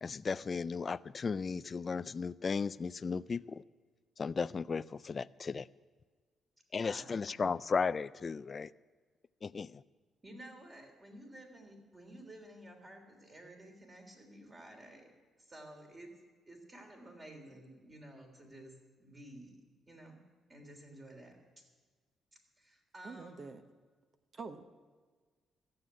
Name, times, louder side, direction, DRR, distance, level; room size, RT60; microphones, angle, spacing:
voice 1, 0.0-3.6 4.2-5.7 6.7-8.7 9.4-9.8, left 5 dB, 35° left, 15 dB, 0.3 m, -35 dB
voice 2, 6.8-7.5 10.2-15.1 15.4-16.1 16.5-19.6 19.9-20.2 20.5-21.4 22.6-23.4, right 1 dB, 25° right, 2 dB, 3.4 m, -52 dB
voice 3, 23.0-23.6 24.3-24.6, right 4 dB, 45° right, 8 dB, 1.0 m, -45 dB
14.0 x 7.8 x 9.7 m, 1.5 s
cardioid pair, 90°, 0 cm